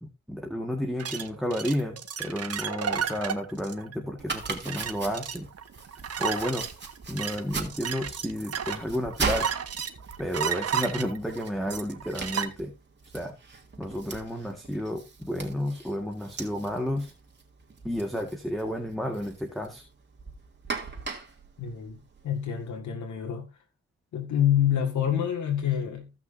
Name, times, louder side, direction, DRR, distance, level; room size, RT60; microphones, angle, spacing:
voice 1, 0.0-5.5 6.2-6.7 7.1-9.5 10.2-12.7 13.1-13.3 13.8-17.1 17.8-19.8, equal, ahead, 1.7 m, -31 dB
sound 1, 1.0-12.5, right 8 dB, 55° right, 1.3 m, -33 dB
Domestic sounds home sounds, 4.2-22.6, right 4 dB, 40° right, 2.6 m, -40 dB
voice 2, 21.6-23.5 24.1-26.1, left 10 dB, 80° left, 2.0 m, -27 dB
16.0 x 5.9 x 2.7 m
cardioid pair, 65°, 29 cm